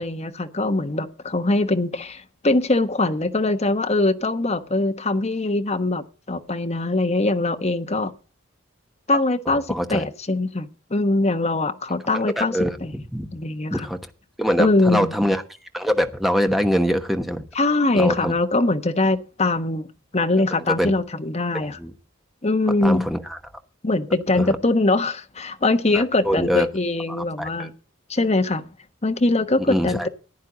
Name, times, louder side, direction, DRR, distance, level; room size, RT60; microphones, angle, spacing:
voice 1, 0.0-8.1 9.1-12.9 13.3-13.9 14.6-15.1 17.5-19.9 20.1-21.8 22.4-23.1 23.8-27.7 28.1-28.6 29.0-30.1, left 2 dB, 30° left, 1.1 m, -22 dB
voice 2, 9.7-10.0 12.1-13.3 13.7-14.0 14.4-15.4 15.7-17.4 17.9-18.3 20.7-20.9 21.5-21.9 22.8-23.4 24.4-24.6 25.9-26.7 27.1-27.7 29.6-30.1, equal, ahead, 1.1 m, -24 dB
15.0 x 10.0 x 3.9 m
head